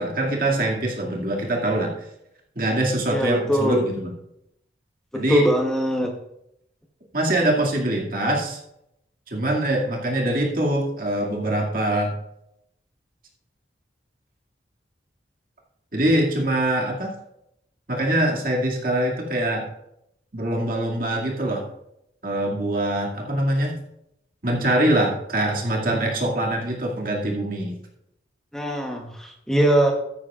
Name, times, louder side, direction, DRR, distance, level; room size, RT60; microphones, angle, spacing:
voice 1, 0.0-1.9 2.6-4.1 5.1-5.5 7.1-8.6 9.3-12.1 15.9-17.1 17.9-19.7 20.3-21.7 22.2-23.8 24.4-27.7, right 1 dB, 50° right, -1 dB, 2.2 m, -23 dB
voice 2, 3.1-3.8 5.1-6.1 28.5-29.9, right 1 dB, 5° left, 1 dB, 1.0 m, -22 dB
14.0 x 9.8 x 2.4 m, 0.79 s
head